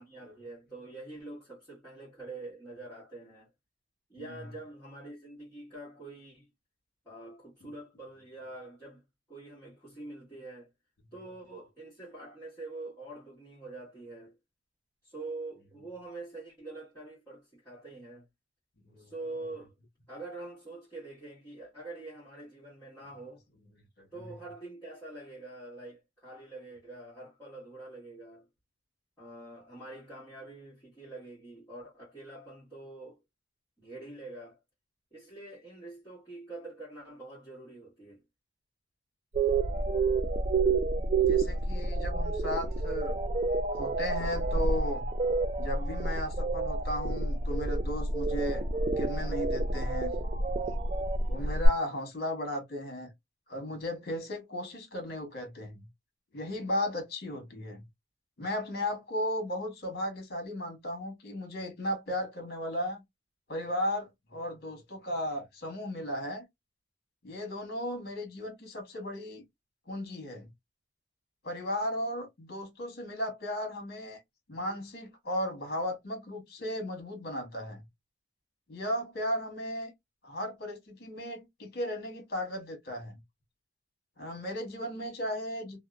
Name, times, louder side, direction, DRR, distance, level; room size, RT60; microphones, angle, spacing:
voice 1, 0.0-3.5 4.1-6.5 7.0-10.7 11.1-14.4 15.0-18.2 19.0-19.7 20.1-23.4 24.1-28.5 29.2-33.2 33.8-34.6 35.1-38.2, right 2 dB, 10° left, 1.3 m, -45 dB
sound 1, 39.3-51.7, right 3 dB, 35° right, 0.3 m, -29 dB
voice 2, 41.2-43.2 43.7-45.0 45.6-50.2 51.3-53.1 53.5-55.9 56.3-57.8 58.4-63.0 63.5-66.4 67.2-69.4 69.9-70.5 71.4-74.2 74.5-77.8 78.7-79.9 80.2-83.2 84.2-85.8, left 1 dB, 50° left, 1.2 m, -35 dB
2.7 x 2.1 x 2.3 m
head